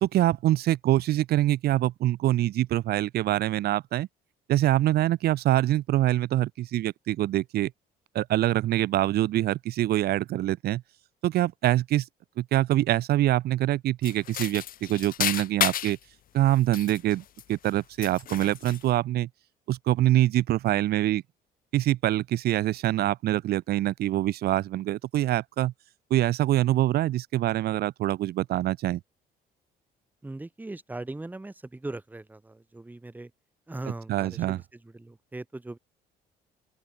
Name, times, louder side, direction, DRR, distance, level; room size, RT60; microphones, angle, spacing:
voice 1, 0.0-4.1 4.5-7.7 8.2-10.8 11.2-12.1 12.4-16.0 16.3-19.3 19.7-21.2 21.7-25.7 26.1-29.0 34.1-34.6, right 14 dB, 70° right, 1.6 m, -25 dB
sound 1, 14.0-16.0 16.6-17.7 18.0-18.9, left 11 dB, 55° left, 2.9 m, -31 dB
voice 2, 30.2-33.3 33.7-35.8, right 2 dB, 10° right, 1.7 m, -39 dB
open air
cardioid pair, 110°, 17 cm